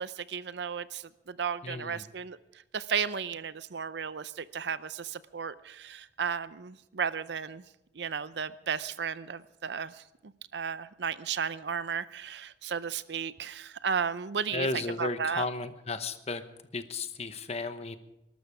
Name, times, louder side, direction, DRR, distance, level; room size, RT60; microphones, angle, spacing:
voice 1, 0.0-2.4 2.7-7.6 8.0-9.9 10.5-15.5, right 6 dB, 70° right, 16 dB, 0.6 m, -34 dB
voice 2, 1.6-2.0 14.5-16.4 16.7-18.0, left 3 dB, 35° left, 10 dB, 0.9 m, -34 dB
20.5 x 12.5 x 4.8 m, 0.88 s
head